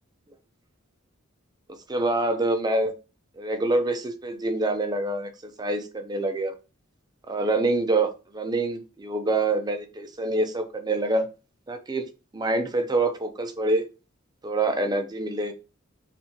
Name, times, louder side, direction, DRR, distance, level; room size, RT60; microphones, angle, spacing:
voice 1, 1.9-2.9 3.4-6.5 7.3-11.3 11.7-13.8 14.4-15.5, right 2 dB, 20° right, 7 dB, 0.5 m, -26 dB
4.5 x 3.3 x 2.8 m, 0.31 s
head